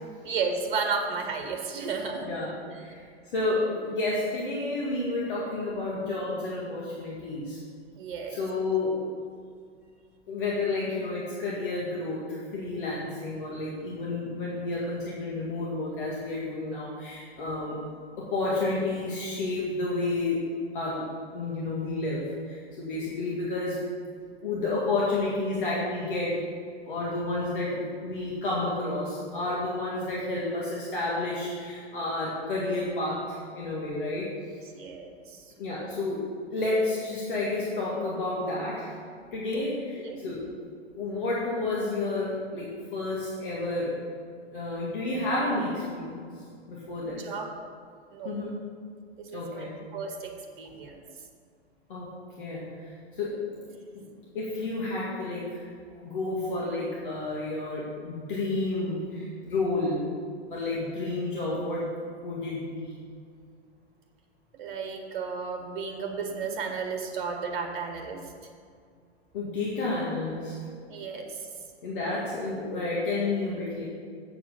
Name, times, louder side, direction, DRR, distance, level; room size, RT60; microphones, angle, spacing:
voice 1, 0.2-2.3 2.7-2.8 7.9-8.4 34.2-34.3 34.7-35.5 39.5-39.6 40.0-40.2 47.0-47.5 48.1-48.4 49.2-51.0 60.7-60.8 64.5-68.3 70.9-71.5, right 5 dB, 50° right, 4 dB, 1.5 m, -33 dB
voice 2, 2.1-3.0 3.3-7.6 8.3-9.0 10.3-17.8 18.2-20.5 20.7-23.8 24.4-26.4 26.9-34.3 35.6-36.2 36.5-38.9 39.3-40.4 41.0-44.0 44.5-46.2 46.7-47.2 48.2-48.5 49.3-49.7 51.9-52.1 52.4-52.6 53.1-53.4 53.9-54.1 54.3-55.6 56.0-60.0 60.5-61.8 62.2-62.9 69.3-70.5 71.8-73.9, left 2 dB, 50° left, -5 dB, 2.0 m, -30 dB
7.8 x 7.4 x 5.6 m, 2.2 s
figure-of-eight pair, 105°, 33 cm